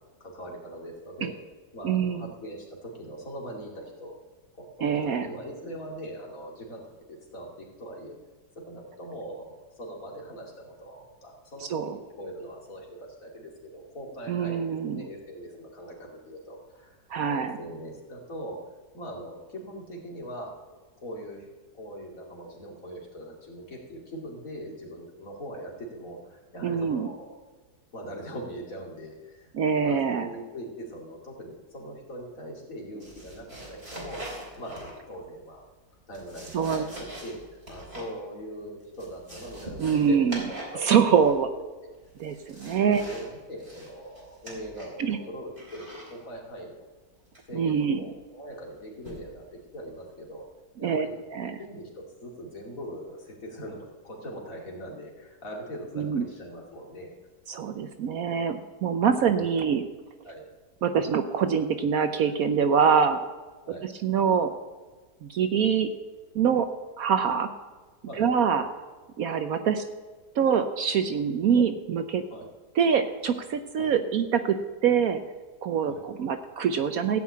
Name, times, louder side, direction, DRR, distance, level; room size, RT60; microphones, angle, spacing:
voice 1, 0.2-1.3 1.7-4.1 4.6-8.2 8.6-17.0 17.2-18.6 18.9-21.5 21.8-27.4 27.9-29.5 29.8-34.2 34.6-35.6 36.1-40.4 40.7-41.4 41.8-41.9 42.8-46.9 47.5-50.5 50.8-51.2 51.6-57.1 60.2-60.5 63.6-63.9 68.1-68.3 72.3-72.5 73.8-73.9 75.8-76.0, equal, 50° left, -2 dB, 2.9 m, -41 dB
voice 2, 1.8-2.3 4.8-5.3 11.7-12.0 14.3-15.1 17.1-17.6 26.6-27.1 29.5-30.3 36.5-36.8 39.8-40.4 40.8-41.5 42.2-43.0 45.0-45.2 47.5-48.0 50.8-51.1 51.3-51.6 56.0-56.2 57.5-59.9 60.8-63.2 63.8-64.5 65.2-65.9 66.3-66.7 67.0-67.5 68.2-68.7 69.2-69.8 70.4-72.2 72.8-74.6 74.8-75.2 75.6-77.2, right 7 dB, 65° right, 8 dB, 1.1 m, -24 dB
sound 1, 33.0-35.2 35.9-38.2 38.5-38.6 38.8-40.8 41.1-41.6 42.0-43.3 43.6-45.1 45.6-46.1 47.3-47.7 49.0-49.4 49.9-50.1, right 1 dB, 30° right, 4.3 m, -43 dB
15.0 x 5.6 x 8.5 m, 1.3 s
omnidirectional pair, 1.8 m